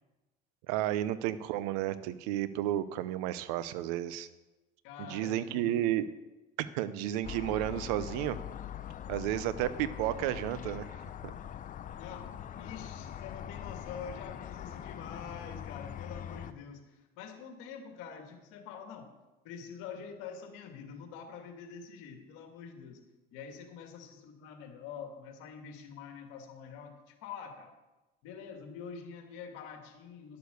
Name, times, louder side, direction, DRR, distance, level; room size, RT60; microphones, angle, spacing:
voice 1, 0.7-4.3 5.0-6.1 6.6-8.4 9.1-11.0, right 13 dB, 90° right, 15 dB, 0.7 m, -32 dB
voice 2, 4.8-5.8 12.0-19.1 19.4-23.0 23.3-27.8 28.2-30.4, left 6 dB, 80° left, 5 dB, 2.0 m, -46 dB
sound 1, 7.2-16.5, left 10 dB, 40° left, 0.7 m, -42 dB
11.5 x 6.8 x 6.8 m, 1.1 s
supercardioid pair, 90°, 20 cm